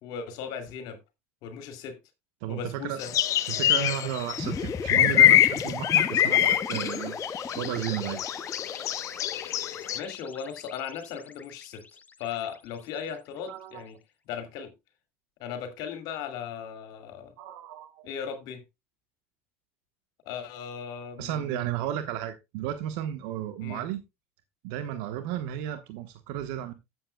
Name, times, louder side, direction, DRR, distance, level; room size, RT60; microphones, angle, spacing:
voice 1, 0.0-1.0 1.4-2.0 2.5-3.1 3.7-4.1 9.9-11.8 12.2-14.0 14.3-14.7 15.4-17.3 18.0-18.6 20.3-21.7 23.6-23.8, left 7 dB, 60° left, 2.5 m, -37 dB
voice 2, 2.4-3.0 3.5-7.2 7.5-8.2 13.5-13.8 17.4-18.1 21.2-24.0 24.6-26.7, right 12 dB, 70° right, 1.2 m, -33 dB
sound 1, 3.0-10.0, left 12 dB, 45° left, 0.9 m, -24 dB
sound 2, 4.4-12.7, left 5 dB, 20° left, 0.8 m, -37 dB
14.5 x 7.8 x 2.2 m
supercardioid pair, 100°, 7 cm